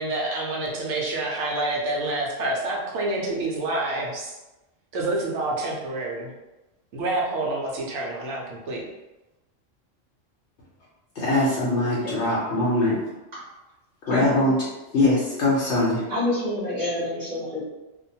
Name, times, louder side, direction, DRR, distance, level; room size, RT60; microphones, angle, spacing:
voice 1, 0.0-4.3 4.9-6.3 6.9-8.9, right 2 dB, 70° right, -2 dB, 0.9 m, -28 dB
voice 2, 11.2-13.0 14.1-14.6 14.9-16.0, left 2 dB, 65° left, -7 dB, 0.9 m, -22 dB
voice 3, 14.1-14.5 16.1-17.6, left 1 dB, 35° right, -9 dB, 1.0 m, -28 dB
2.5 x 2.1 x 2.7 m, 1.0 s
omnidirectional pair, 1.3 m